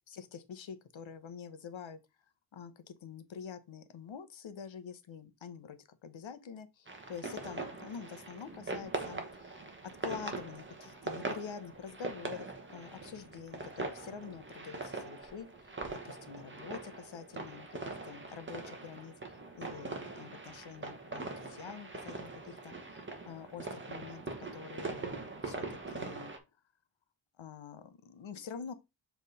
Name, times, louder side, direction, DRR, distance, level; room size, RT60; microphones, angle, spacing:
voice 1, 0.0-2.0 2.5-9.6 10.0-19.1 19.5-26.3 27.4-28.7, left 7 dB, 75° left, 1.0 m, -47 dB
sound 1, 6.9-26.4, right 3 dB, 25° right, 1.3 m, -42 dB
7.5 x 3.5 x 4.0 m
wide cardioid pair, 165°, 47 cm